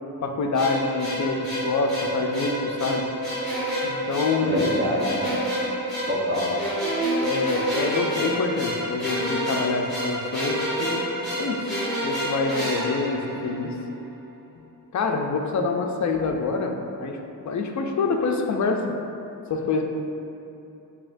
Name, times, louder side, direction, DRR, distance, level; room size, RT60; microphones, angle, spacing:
voice 1, 0.2-3.1 3.8-4.7 7.2-11.1 11.4-11.8 12.0-13.7 14.9-17.2 17.4-18.8 19.5-19.8, left 4 dB, 50° left, 3 dB, 0.4 m, -26 dB
sound 1, 0.5-13.8, right 1 dB, ahead, 1.2 m, -28 dB
voice 2, 4.4-5.4 6.1-6.6, left 1 dB, 30° right, -4 dB, 0.7 m, -26 dB
7.2 x 2.8 x 2.5 m, 2.8 s
wide cardioid pair, 160°, 36 cm